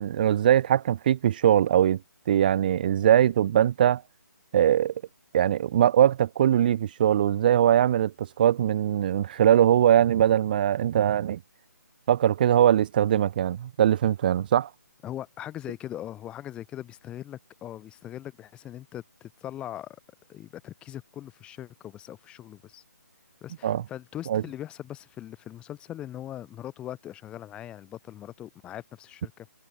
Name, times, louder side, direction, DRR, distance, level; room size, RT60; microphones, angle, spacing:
voice 1, 0.0-2.0 2.3-4.0 4.5-4.9 5.3-11.4 12.1-14.7 23.6-23.8 24.3-24.4, right 10 dB, 30° right, 0.9 m, -21 dB
voice 2, 15.0-20.0 20.3-22.8 23.4-29.5, left 12 dB, 10° left, 6.2 m, -40 dB
hypercardioid pair, 165°, 10 cm